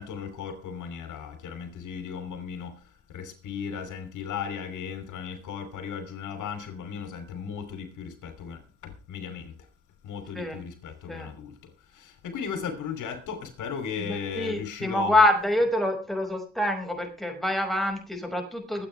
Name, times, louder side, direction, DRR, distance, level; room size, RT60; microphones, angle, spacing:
voice 1, 0.0-2.7 3.1-9.5 10.0-11.5 12.0-15.1, left 7 dB, 80° left, 3.1 m, -36 dB
voice 2, 14.0-18.9, left 1 dB, ahead, 5.4 m, -26 dB
24.0 x 8.8 x 3.3 m
cardioid pair, 90°, 30 cm